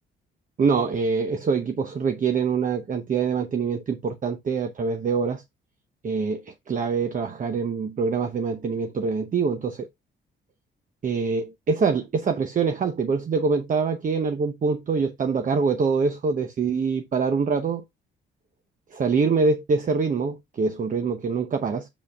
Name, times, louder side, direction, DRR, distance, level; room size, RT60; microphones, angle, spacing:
voice 1, 0.6-5.4 6.0-9.9 11.0-17.8 18.9-21.9, right 5 dB, 40° right, 0.9 m, -24 dB
7.3 x 7.1 x 2.3 m
cardioid pair, 90°, 20 cm